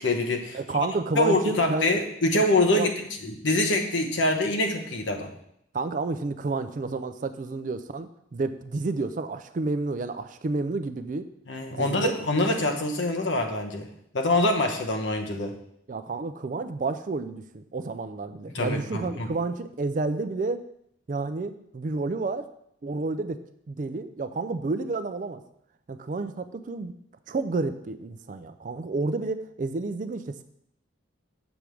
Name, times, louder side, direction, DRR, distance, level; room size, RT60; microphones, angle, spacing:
voice 1, 0.0-0.9 1.2-5.3 11.5-13.9 14.1-15.5 18.5-19.3, left 2 dB, 70° left, 3 dB, 0.9 m, -25 dB
voice 2, 0.5-1.9 2.7-2.9 5.7-11.3 11.7-12.1 15.9-20.7 21.1-22.5 22.8-25.4 25.9-26.9 27.3-30.4, right 3 dB, 40° right, 10 dB, 0.4 m, -30 dB
7.1 x 3.4 x 6.2 m, 0.73 s
head